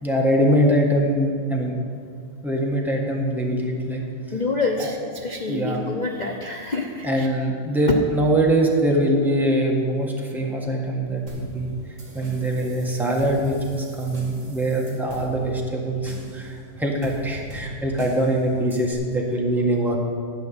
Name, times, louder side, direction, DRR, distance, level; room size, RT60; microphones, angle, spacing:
voice 1, 0.0-1.7 2.4-4.0 4.8-4.9 5.5-5.8 7.0-11.7 12.1-20.0, right 1 dB, ahead, -2 dB, 1.3 m, -23 dB
voice 2, 4.3-7.3, left 3 dB, 80° left, 1 dB, 0.4 m, -27 dB
sound 1, 11.3-18.9, right 1 dB, 30° right, 2.2 m, -39 dB
12.0 x 5.7 x 8.9 m, 2.3 s
omnidirectional pair, 2.0 m